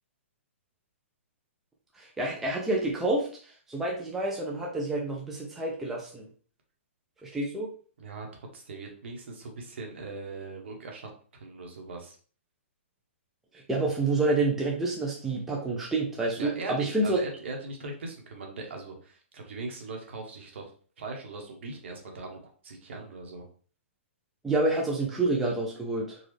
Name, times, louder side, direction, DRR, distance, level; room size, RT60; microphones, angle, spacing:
voice 1, 1.9-6.3 7.2-7.7 13.5-17.2 24.4-26.2, right 2 dB, 5° right, -3 dB, 0.4 m, -28 dB
voice 2, 8.0-12.2 16.4-20.6 21.0-23.4, right 3 dB, 60° right, 2 dB, 1.2 m, -40 dB
4.0 x 2.4 x 3.2 m, 0.43 s
hypercardioid pair, 165°, 7 cm